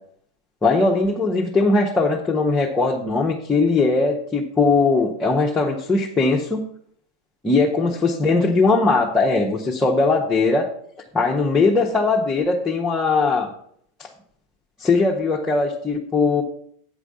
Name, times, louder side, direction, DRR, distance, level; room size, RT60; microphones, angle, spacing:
voice 1, 0.6-6.6 7.4-10.7 11.1-13.5 14.8-16.4, left 3 dB, 15° left, -4 dB, 1.2 m, -19 dB
8.2 x 4.9 x 6.8 m, 0.63 s
figure-of-eight pair, 85°, 0 cm